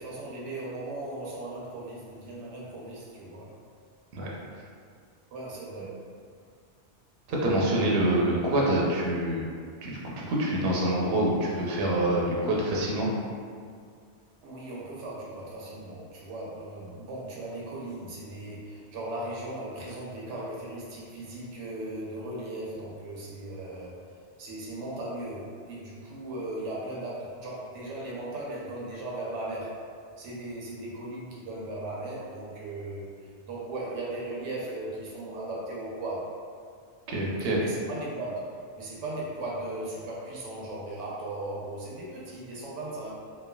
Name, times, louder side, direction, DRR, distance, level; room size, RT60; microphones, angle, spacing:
voice 1, 0.0-3.6 5.3-6.0 14.4-24.0 24.4-29.8 30.2-33.1 33.4-36.3 37.5-43.1, right 2 dB, 85° right, -5 dB, 0.9 m, -37 dB
voice 2, 7.3-9.5 9.8-13.1 37.1-37.6, right 1 dB, 65° right, -4 dB, 0.7 m, -26 dB
3.0 x 2.1 x 2.2 m, 2.1 s
omnidirectional pair, 1.2 m